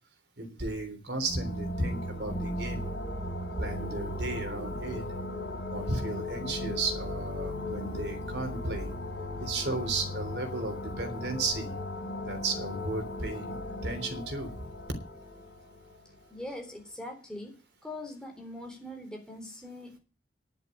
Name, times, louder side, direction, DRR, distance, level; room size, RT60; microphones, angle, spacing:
voice 1, 0.4-2.9 3.6-5.0 5.7-8.9 9.4-11.7 12.3-13.6 13.8-14.5, right 2 dB, 70° right, 6 dB, 3.4 m, -34 dB
sound 1, 1.1-16.6, left 1 dB, 80° left, 4.5 m, -37 dB
voice 2, 16.3-17.6 17.8-20.0, left 1 dB, 5° left, 1 dB, 3.8 m, -42 dB
11.0 x 7.6 x 8.8 m, 0.34 s
head